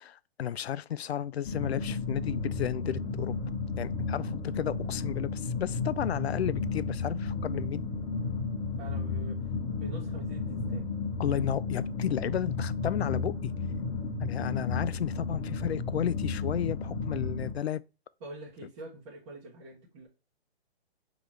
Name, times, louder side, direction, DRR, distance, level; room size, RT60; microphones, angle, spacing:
voice 1, 0.0-3.4 3.8-7.8 11.2-13.5 14.2-17.8, left 10 dB, 75° left, 0.5 m, -33 dB
sound 1, 1.4-17.5, left 4 dB, 25° left, 1.2 m, -33 dB
voice 2, 8.8-9.4 9.7-10.9 18.2-20.1, right 2 dB, 25° right, 1.2 m, -46 dB
3.9 x 3.0 x 4.5 m
hypercardioid pair, 145°, 32 cm